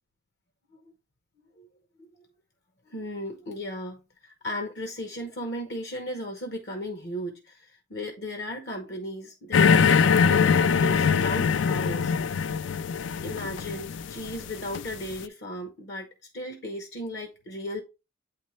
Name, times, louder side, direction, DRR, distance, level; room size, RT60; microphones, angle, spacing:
voice 1, 2.9-12.1 13.2-16.1 16.3-17.8, left 1 dB, 60° left, 1.0 m, -35 dB
sound 1, 9.5-15.1, left 6 dB, 75° left, 0.3 m, -22 dB
8.5 x 4.3 x 3.1 m
head